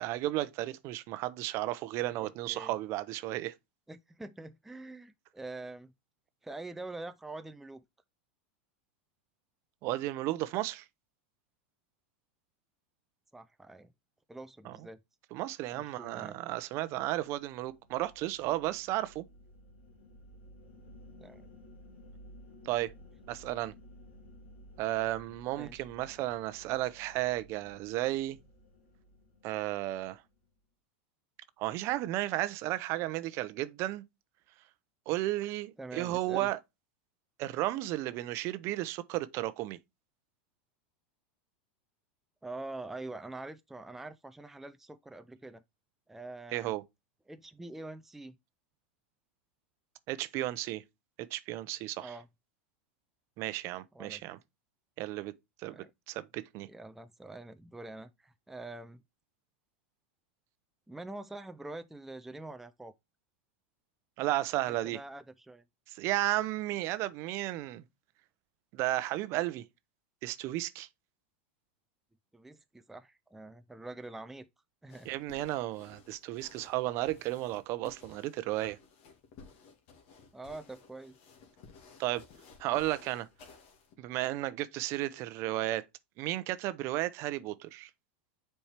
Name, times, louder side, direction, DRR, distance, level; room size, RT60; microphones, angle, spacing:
voice 1, 0.0-3.5 9.8-10.8 14.6-14.8 15.3-19.2 22.6-22.9 23.3-23.7 24.8-28.4 29.4-30.2 31.6-34.0 35.1-36.6 37.4-39.8 46.5-46.8 50.1-50.8 51.3-52.1 53.4-54.4 55.0-55.3 55.6-55.8 56.1-56.7 64.2-65.0 65.9-67.8 68.7-69.7 70.2-70.9 75.1-78.8 82.0-82.2 82.6-83.3 84.0-85.9 86.2-87.9, right 16 dB, 50° right, 0.6 m, -33 dB
voice 2, 2.2-2.7 3.9-5.9 6.4-7.8 13.3-13.9 14.3-15.0 15.7-16.4 21.2-21.5 25.5-25.8 35.8-36.5 42.4-45.6 46.1-46.7 47.3-48.4 52.0-52.3 53.9-54.2 55.6-55.9 56.6-59.0 60.9-62.9 64.7-65.6 72.3-74.5 74.8-75.1 80.3-81.1, right 2 dB, 5° right, 0.4 m, -45 dB
sound 1, 17.3-30.5, left 1 dB, 80° left, 2.4 m, -55 dB
sound 2, 74.9-83.9, left 5 dB, 60° left, 2.1 m, -56 dB
7.1 x 4.5 x 3.3 m
hypercardioid pair, 115°, 6 cm